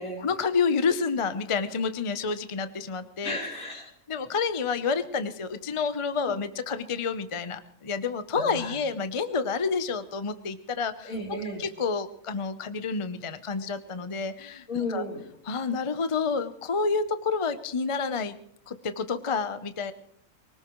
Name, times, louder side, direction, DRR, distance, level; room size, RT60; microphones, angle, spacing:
voice 1, 0.2-3.4 4.1-11.1 11.6-15.0 15.5-18.4 18.7-19.9, left 5 dB, 30° left, 10 dB, 0.6 m, -29 dB
voice 2, 3.2-3.9 6.3-6.4 8.3-8.8 11.0-11.6 14.7-15.2, left 1 dB, 70° left, -2 dB, 4.6 m, -34 dB
24.0 x 18.5 x 3.1 m, 0.66 s
omnidirectional pair, 1.5 m